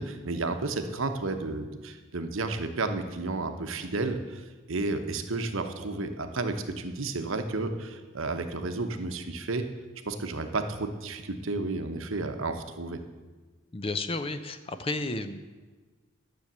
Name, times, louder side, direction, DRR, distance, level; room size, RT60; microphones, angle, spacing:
voice 1, 0.0-9.6 10.1-13.0, right 3 dB, 65° right, 7 dB, 0.9 m, -32 dB
voice 2, 13.7-15.4, left 2 dB, 25° left, 10 dB, 0.5 m, -32 dB
10.0 x 6.6 x 7.9 m, 1.3 s
head